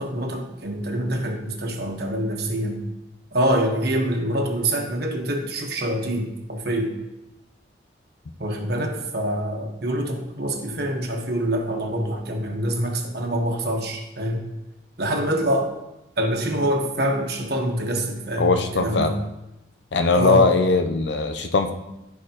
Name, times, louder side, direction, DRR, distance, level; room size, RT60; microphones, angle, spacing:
voice 1, 0.0-2.8 3.3-6.9 8.4-14.4 15.0-15.7 16.2-19.2 20.1-20.5, right 1 dB, 55° right, 1 dB, 1.3 m, -25 dB
voice 2, 18.4-19.1 19.9-21.7, left 3 dB, 65° left, 7 dB, 0.6 m, -20 dB
14.5 x 4.8 x 3.0 m, 0.93 s
head